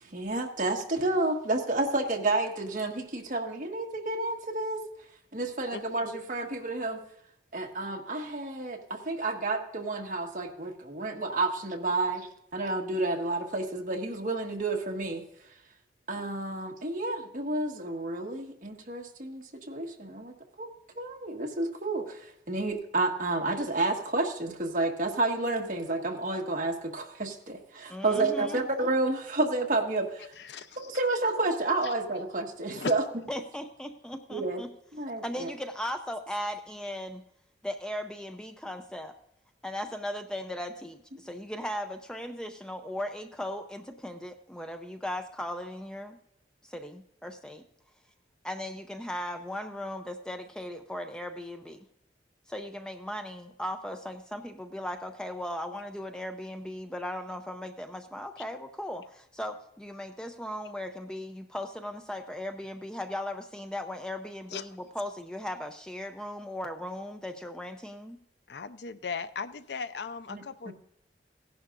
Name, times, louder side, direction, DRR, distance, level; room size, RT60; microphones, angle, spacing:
voice 1, 0.0-4.8 5.3-7.0 7.5-15.2 16.1-20.7 20.9-30.3 30.8-33.0 34.3-34.6 34.9-35.5 70.3-70.7, right 2 dB, 45° right, 1 dB, 1.6 m, -30 dB
voice 2, 27.9-28.6 33.3-34.7 35.2-37.2 37.6-39.2 39.6-46.2 46.6-47.6 48.4-51.9 52.5-68.2, left 1 dB, 5° left, 6 dB, 0.5 m, -37 dB
voice 3, 30.4-30.9 31.8-31.9 32.7-32.9 64.5-64.6 68.5-70.7, left 5 dB, 75° left, 12 dB, 0.6 m, -37 dB
16.5 x 11.0 x 2.5 m, 0.78 s
head